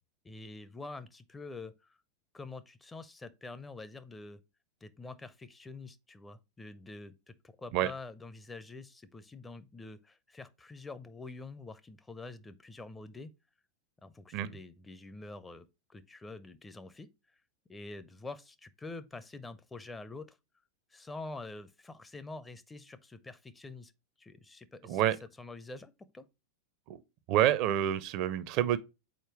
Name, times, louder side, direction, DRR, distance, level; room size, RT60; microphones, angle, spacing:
voice 1, 0.2-2.0 2.3-4.4 4.8-13.3 14.0-17.1 17.7-20.4 20.9-23.9 24.2-25.0 25.4-26.2, left 3 dB, 10° left, 0.5 m, -46 dB
voice 2, 27.3-28.8, right 12 dB, 40° right, 0.5 m, -28 dB
5.0 x 4.4 x 4.4 m
figure-of-eight pair, 90°, 0 cm